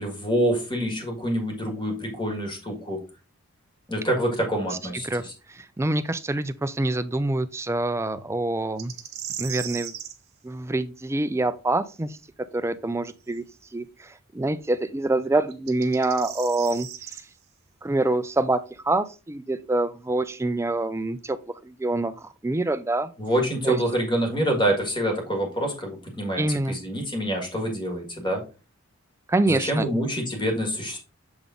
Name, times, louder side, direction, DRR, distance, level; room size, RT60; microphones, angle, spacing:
voice 1, 0.0-3.0 3.9-5.3 23.2-28.4 29.5-31.0, equal, 20° left, 2 dB, 1.8 m, -26 dB
voice 2, 5.0-8.9 9.4-9.9 10.4-12.2 12.5-13.4 13.7-16.9 17.8-21.4 21.6-23.1 23.6-23.8 26.4-26.8 29.3-29.9, right 2 dB, 15° right, 11 dB, 0.4 m, -26 dB
sound 1, 8.8-10.2 13.3-13.4 15.5-17.2, right 9 dB, 50° right, 0.9 m, -36 dB
7.0 x 3.6 x 3.7 m, 0.32 s
head